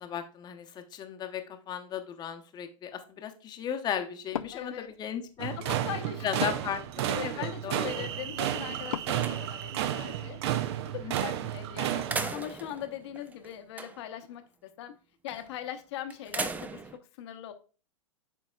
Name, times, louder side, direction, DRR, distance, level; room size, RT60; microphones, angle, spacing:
voice 1, 0.0-5.6 6.2-8.1 11.0-11.3, left 9 dB, 25° left, 0.9 m, -36 dB
Wood, 4.2-10.3, left 9 dB, 80° left, 0.4 m, -43 dB
voice 2, 4.5-4.9 5.6-6.5 7.1-10.4 11.2-14.9 15.2-17.5, left 11 dB, 55° left, 1.0 m, -40 dB
sound 1, 5.4-12.3, right 11 dB, 50° right, 0.6 m, -32 dB
sound 2, 6.1-7.6 8.1-8.2 8.6-9.8 11.2-11.6 11.9-14.2 15.3-15.6 16.1-17.0, right 4 dB, 10° right, 0.4 m, -39 dB
11.0 x 4.0 x 2.3 m
hypercardioid pair, 110°, 17 cm